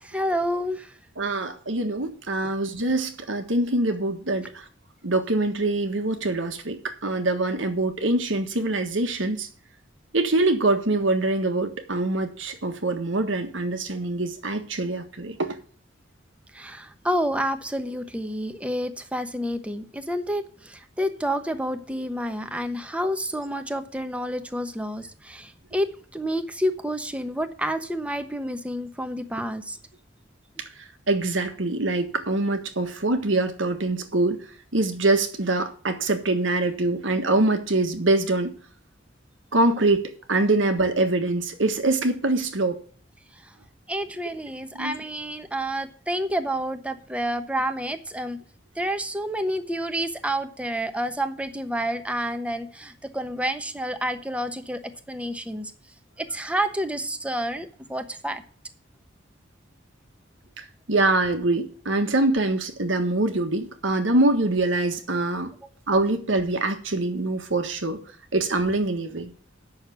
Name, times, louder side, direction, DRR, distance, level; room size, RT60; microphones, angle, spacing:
voice 1, 0.0-0.9 16.5-25.9 26.1-29.8 43.9-48.4 48.8-54.8 55.1-55.7 56.2-58.4, equal, 5° right, 1.0 m, -29 dB
voice 2, 1.2-4.6 5.0-9.5 10.1-15.6 31.1-34.4 34.7-38.5 39.5-42.8 44.7-44.9 60.9-65.5 65.9-68.0 68.3-69.3, right 2 dB, 90° right, 1.6 m, -24 dB
8.3 x 6.5 x 8.2 m
head